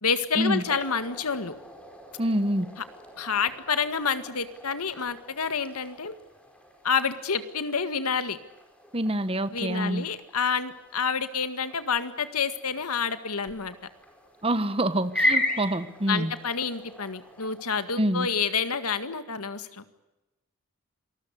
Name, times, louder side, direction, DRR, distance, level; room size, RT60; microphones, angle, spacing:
voice 1, 0.0-1.5 3.2-6.2 6.8-8.4 9.5-13.8 16.1-19.8, left 6 dB, 90° left, 11 dB, 1.9 m, -28 dB
sound 1, 0.6-17.8, left 1 dB, 5° left, 4.7 m, -37 dB
voice 2, 2.2-2.7 8.9-10.1 14.4-16.3 18.0-18.3, right 1 dB, 25° right, 13 dB, 1.2 m, -26 dB
27.5 x 20.0 x 8.4 m, 1.0 s
head